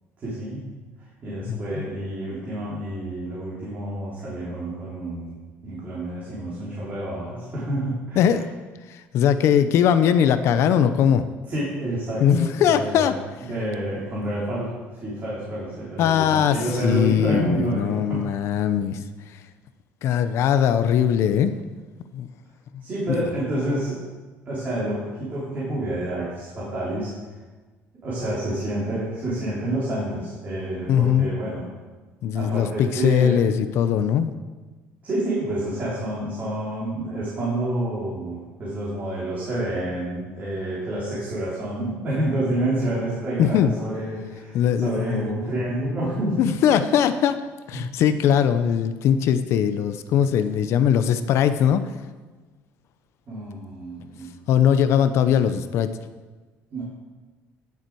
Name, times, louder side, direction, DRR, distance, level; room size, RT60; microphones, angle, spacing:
voice 1, 0.2-8.4 11.5-14.7 15.0-18.3 22.8-24.0 24.5-27.1 28.0-31.6 32.3-33.4 35.0-46.5 47.7-47.8 53.3-54.3 56.7-56.8, right 1 dB, 35° right, -7 dB, 3.5 m, -28 dB
voice 2, 1.5-1.9 8.2-8.5 9.1-11.2 12.2-13.2 16.0-16.6 16.8-19.1 20.0-21.5 22.1-22.3 30.9-31.3 32.2-34.3 43.4-43.7 44.5-45.3 46.4-47.4 47.7-51.8 54.5-55.9, left 9 dB, 60° left, 11 dB, 0.8 m, -20 dB
17.5 x 7.2 x 4.7 m, 1.3 s
cardioid pair, 150°, 5 cm